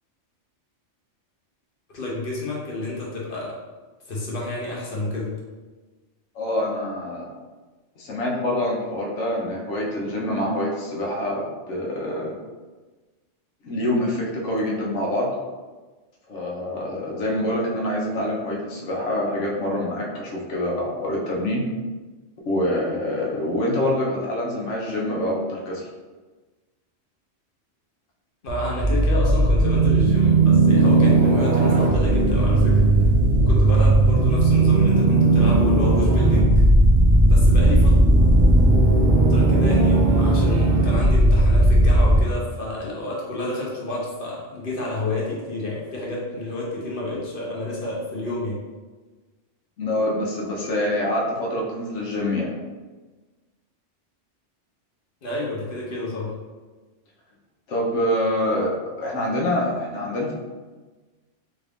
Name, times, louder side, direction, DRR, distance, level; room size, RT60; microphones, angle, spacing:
voice 1, 1.9-3.5 4.1-5.3 28.4-33.0 33.4-36.4 37.2-37.9 39.3-48.6 55.2-56.3, left 2 dB, 50° left, -4 dB, 1.0 m, -29 dB
voice 2, 6.3-7.3 8.0-12.3 13.6-15.3 16.3-21.6 22.4-25.9 49.8-52.5 57.7-60.3, left 1 dB, 75° left, -2 dB, 1.1 m, -25 dB
sound 1, 28.5-42.2, right 2 dB, 50° right, 0.7 m, -16 dB
3.8 x 2.5 x 3.4 m, 1.3 s
omnidirectional pair, 1.2 m